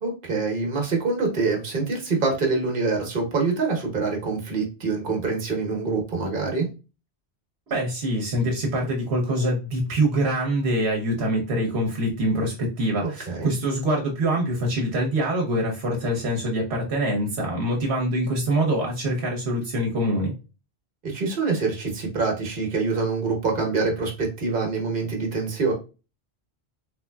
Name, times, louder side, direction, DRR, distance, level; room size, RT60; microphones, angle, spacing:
voice 1, 0.0-6.7 13.0-13.5 21.0-25.7, right 4 dB, 50° right, 1 dB, 1.1 m, -25 dB
voice 2, 7.7-20.3, right 1 dB, 75° right, 0 dB, 1.0 m, -24 dB
3.6 x 3.1 x 2.2 m, 0.31 s
omnidirectional pair, 1.1 m